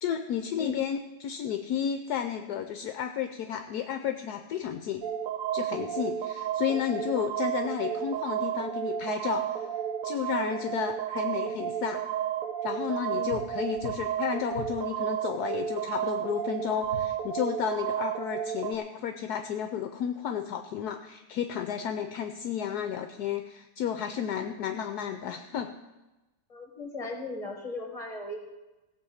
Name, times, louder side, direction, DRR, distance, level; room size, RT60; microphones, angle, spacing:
voice 1, 0.0-5.0 5.5-9.7 10.0-12.0 12.6-25.7, left 9 dB, 70° left, 7 dB, 1.1 m, -32 dB
sound 1, 5.0-18.7, right 10 dB, 70° right, 0.8 m, -32 dB
sound 2, 13.3-13.5 13.8-14.1 14.5-14.8 16.8-17.1, left 5 dB, 55° left, 1.7 m, -41 dB
voice 2, 26.5-28.4, left 2 dB, 20° left, 2 dB, 2.0 m, -37 dB
16.0 x 7.4 x 5.6 m, 1.1 s
omnidirectional pair, 2.0 m